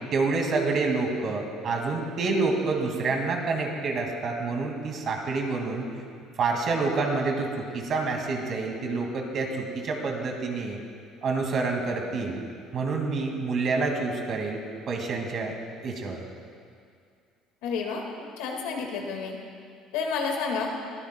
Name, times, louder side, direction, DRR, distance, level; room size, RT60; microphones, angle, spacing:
voice 1, 0.1-5.9 6.4-10.8 11.2-12.4 12.7-14.6 14.9-15.5 15.8-16.2, right 3 dB, 50° right, 2 dB, 2.0 m, -28 dB
voice 2, 17.6-18.0 18.4-19.4 19.9-20.7, left 5 dB, 85° left, 2 dB, 1.7 m, -30 dB
21.5 x 12.5 x 2.2 m, 2.3 s
supercardioid pair, 105°, 0 cm